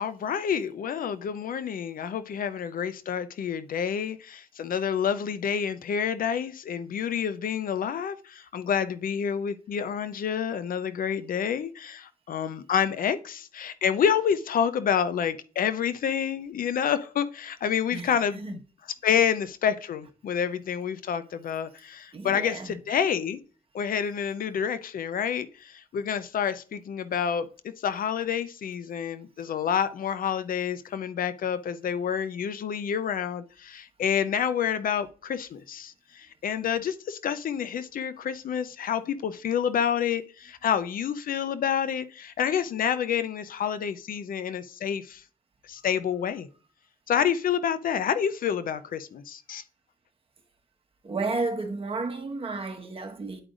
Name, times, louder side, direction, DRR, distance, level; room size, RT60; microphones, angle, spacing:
voice 1, 0.0-18.6 19.0-23.4 23.7-27.5 27.8-45.2 45.6-46.5 47.1-49.6, left 8 dB, 75° left, 0.6 m, -28 dB
voice 2, 17.9-18.6 22.1-22.7 45.8-45.9 51.0-53.4, right 3 dB, 40° right, 1.3 m, -32 dB
11.0 x 4.9 x 2.5 m
cardioid pair, 90°, 15 cm